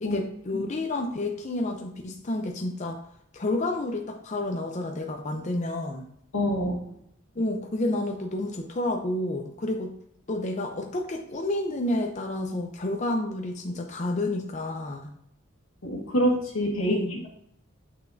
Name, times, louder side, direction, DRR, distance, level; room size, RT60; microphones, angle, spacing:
voice 1, 0.0-3.0 3.3-6.0 7.4-9.9 10.3-15.1 16.8-17.1, left 1 dB, 35° left, 3 dB, 0.5 m, -30 dB
voice 2, 6.3-6.8 15.8-17.0, equal, 90° left, 1 dB, 1.5 m, -26 dB
6.9 x 5.7 x 2.6 m, 0.73 s
head